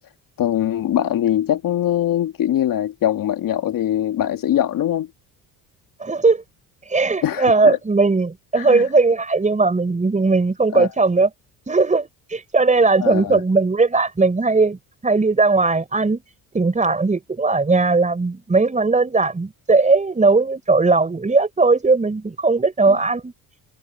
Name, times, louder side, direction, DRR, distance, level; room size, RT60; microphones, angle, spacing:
voice 1, 0.4-5.1 7.2-7.8 8.5-8.9 10.7-10.9 13.0-13.4 22.8-23.0, left 11 dB, 60° left, 2.5 m, -22 dB
voice 2, 6.0-6.4 6.9-11.3 11.7-16.2 16.5-23.3, right 3 dB, 20° right, 5.7 m, -18 dB
cardioid pair, 105°, 38 cm